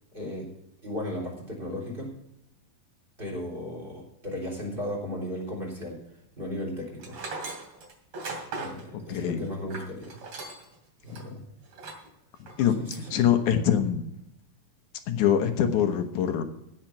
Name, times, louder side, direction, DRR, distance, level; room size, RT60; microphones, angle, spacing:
voice 1, 0.1-0.5 0.8-2.1 3.2-6.0 6.4-7.2 8.5-10.2 11.0-11.4 12.8-13.3, left 1 dB, 15° right, 0 dB, 3.6 m, -35 dB
Tools, 7.0-10.8 11.1-11.2 11.7-12.1 12.5-13.1, right 3 dB, 45° right, 3.5 m, -38 dB
voice 2, 9.1-9.4 12.6-14.0 15.1-16.4, left 9 dB, 65° left, 7 dB, 2.3 m, -24 dB
16.5 x 5.8 x 5.9 m, 0.84 s
omnidirectional pair, 4.2 m